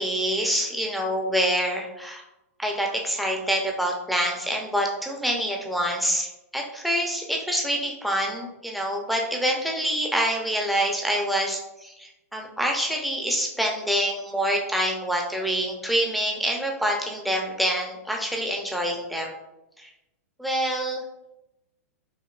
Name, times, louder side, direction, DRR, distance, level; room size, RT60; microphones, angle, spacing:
voice 1, 0.0-2.2 2.6-19.3 19.8-19.9 20.4-21.0, equal, ahead, 0 dB, 0.7 m, -26 dB
5.2 x 2.5 x 2.5 m, 0.92 s
hypercardioid pair, 120°, 8 cm